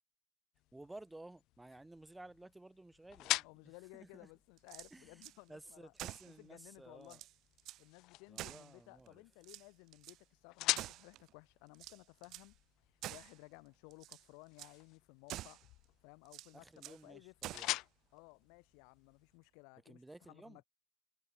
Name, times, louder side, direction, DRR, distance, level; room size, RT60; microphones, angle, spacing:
sound 1, 0.5-19.4, left 18 dB, 60° left, 1.1 m, -46 dB
voice 1, 0.7-4.3 4.9-7.2 8.3-9.2 16.5-17.8 19.8-20.7, right 2 dB, 5° right, 5.2 m, -55 dB
voice 2, 3.4-5.9 6.4-7.2 7.8-12.6 13.1-15.6 16.0-17.3 18.1-20.0 20.3-20.6, left 37 dB, 80° left, 1.6 m, -58 dB
sound 2, 4.6-5.4 6.0-6.4 6.8-6.9 7.0-7.9 8.4-9.1 9.4-10.2 10.7-11.3 11.7-12.5 13.0-13.4 13.9-14.3 14.6-14.8 15.3-15.7 16.3-17.0 17.4-17.8, right 15 dB, 55° right, 1.2 m, -48 dB
cardioid pair, 140°, 0 cm